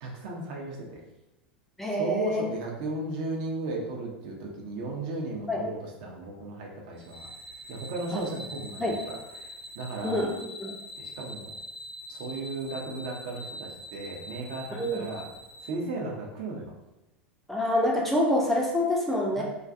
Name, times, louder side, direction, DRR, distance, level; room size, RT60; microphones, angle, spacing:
voice 1, 0.0-1.0 2.0-7.3 7.7-9.2 9.8-10.3 11.0-11.5 12.1-15.3 15.6-16.7 19.3-19.4, right 2 dB, 50° right, -1 dB, 0.6 m, -35 dB
voice 2, 1.8-2.5 5.5-5.6 8.1-8.2 8.8-9.0 10.0-10.8 14.7-15.0 17.5-19.4, left 1 dB, 5° left, -2 dB, 0.4 m, -27 dB
sound 1, 7.0-15.7, equal, 80° left, 0.7 m, -44 dB
2.5 x 2.3 x 2.3 m, 0.98 s
figure-of-eight pair, 85°, 6 cm